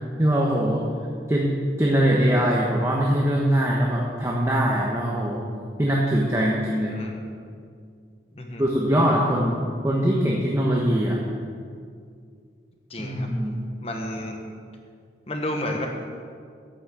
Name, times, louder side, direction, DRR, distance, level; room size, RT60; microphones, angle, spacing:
voice 1, 0.2-0.9 1.3-5.5 5.8-7.0 8.6-9.6 9.8-11.2 13.0-13.6, equal, 15° right, -3 dB, 1.1 m, -22 dB
voice 2, 6.8-7.1 8.3-8.6 12.9-13.3 13.8-14.4 15.3-15.9, left 1 dB, 35° left, 2 dB, 1.1 m, -31 dB
11.5 x 6.3 x 7.7 m, 2.2 s
head